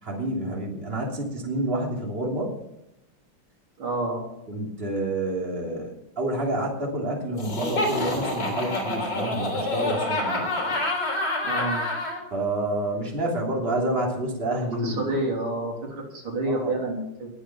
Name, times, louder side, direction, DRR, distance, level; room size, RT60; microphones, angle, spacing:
voice 1, 0.0-2.5 4.5-10.4 12.3-15.2 16.4-16.7, right 1 dB, 25° right, -1 dB, 3.2 m, -28 dB
voice 2, 3.8-4.2 11.4-11.8 14.8-17.3, right 2 dB, 75° right, -1 dB, 4.2 m, -28 dB
Laughter, 7.4-12.2, left 2 dB, 50° left, 4.4 m, -27 dB
20.0 x 8.1 x 5.9 m, 0.85 s
omnidirectional pair, 2.3 m